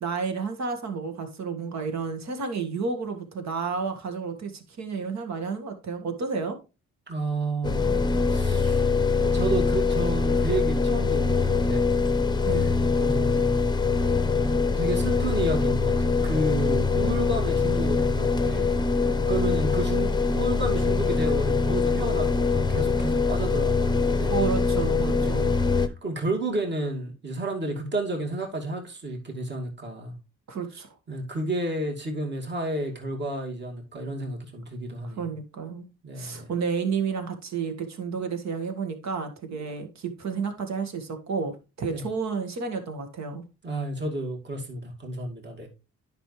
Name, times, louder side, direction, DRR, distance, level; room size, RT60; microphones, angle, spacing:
voice 1, 0.0-6.6 12.4-12.7 24.2-25.5 30.5-30.9 35.0-35.9 36.2-43.4, right 5 dB, 65° right, 1.9 m, -31 dB
voice 2, 7.1-8.0 8.3-8.8 9.2-11.9 12.5-12.7 13.0-13.9 14.4-18.8 19.3-24.4 25.2-25.5 25.8-30.2 31.1-35.2 36.0-36.5 41.9-42.0 43.6-45.7, right 2 dB, 35° right, 2.4 m, -31 dB
sound 1, 7.6-25.9, left 4 dB, 15° left, 0.8 m, -23 dB
9.9 x 5.6 x 3.3 m
cardioid pair, 90°, 30 cm